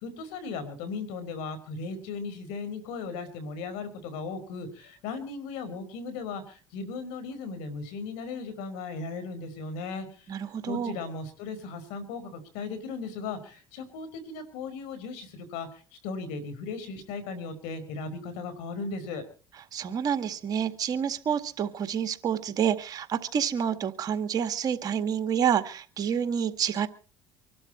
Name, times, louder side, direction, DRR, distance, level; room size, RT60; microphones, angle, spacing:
voice 1, 0.0-10.4 10.6-19.3, left 4 dB, 80° left, 12 dB, 4.8 m, -37 dB
voice 2, 10.3-11.0 19.7-26.9, right 8 dB, 45° right, 9 dB, 1.9 m, -28 dB
25.5 x 12.0 x 4.3 m, 0.39 s
supercardioid pair, 95°, 9 cm